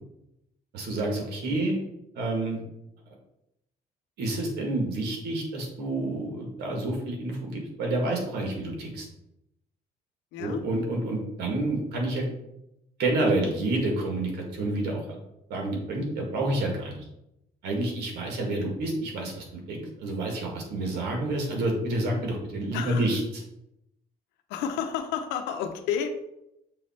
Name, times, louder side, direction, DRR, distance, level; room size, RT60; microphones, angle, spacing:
voice 1, 0.7-1.7 2.1-2.6 4.2-9.1 10.4-12.3 13.0-15.2 15.5-17.0 17.6-23.2, right 2 dB, 80° right, 0 dB, 1.8 m, -29 dB
voice 2, 22.7-23.1 24.5-26.1, left 8 dB, 90° left, 6 dB, 0.7 m, -30 dB
6.8 x 3.2 x 4.2 m, 0.84 s
cardioid pair, 110°, 17 cm